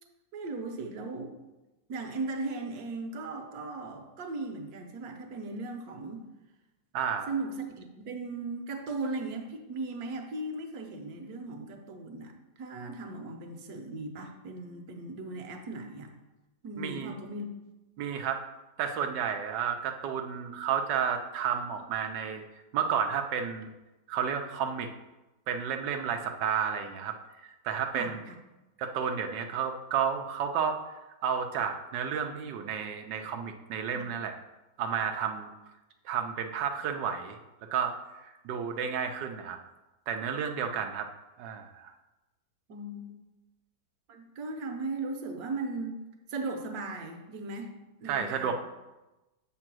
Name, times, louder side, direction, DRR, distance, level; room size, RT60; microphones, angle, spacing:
voice 1, 0.3-1.3 1.9-6.2 7.3-16.1 16.6-17.5 27.9-28.3 33.9-34.1 42.7-43.2 44.1-46.0 46.3-47.7 48.0-48.5, right 3 dB, 65° right, 3 dB, 1.3 m, -37 dB
voice 2, 6.9-7.3 16.8-17.1 18.0-18.4 18.8-22.4 22.7-23.7 24.1-24.9 25.5-27.1 27.4-28.2 28.8-30.8 31.2-34.3 34.8-35.5 36.0-37.4 37.7-37.9 38.2-39.6 40.1-41.1 41.4-41.9 48.1-48.5, right 7 dB, 90° right, 4 dB, 1.3 m, -31 dB
7.5 x 3.9 x 6.0 m, 1.0 s
omnidirectional pair, 1.8 m